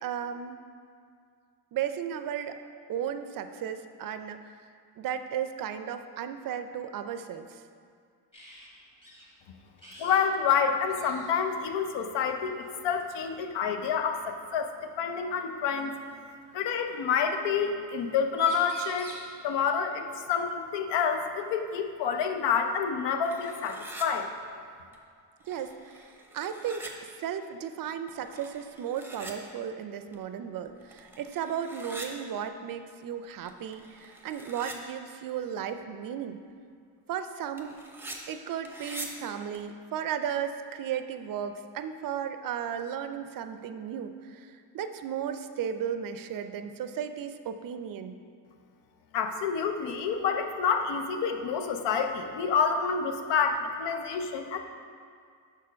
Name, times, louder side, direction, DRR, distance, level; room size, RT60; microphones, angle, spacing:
voice 1, 0.0-0.6 1.7-2.6 2.9-4.4 5.0-7.6 25.5-25.8 26.3-26.9 27.2-36.4 37.1-37.8 38.3-48.1, right 8 dB, 55° right, 9 dB, 0.4 m, -35 dB
sound 1, 8.3-8.7 9.0-9.3 9.8-10.2 10.5-10.6 10.9-11.5 12.6-12.9 14.6-14.7 15.8-16.6 18.0-18.1 18.3-19.3 21.3-21.4 21.8-22.8, equal, 10° left, 1.8 m, -47 dB
voice 2, 10.0-14.7 15.0-15.9 16.5-19.1 19.4-24.3 49.1-54.6, left 6 dB, 80° left, 6 dB, 0.7 m, -28 dB
sound 2, 23.2-24.1 24.9-25.0 25.4-26.9 28.1-29.3 30.1-30.2 30.7-32.1 33.2-34.8 37.6-38.2 38.6-39.1 39.5-39.6, right 2 dB, 5° right, 0.7 m, -44 dB
6.2 x 4.4 x 5.1 m, 2.2 s
cardioid pair, 110°, 42 cm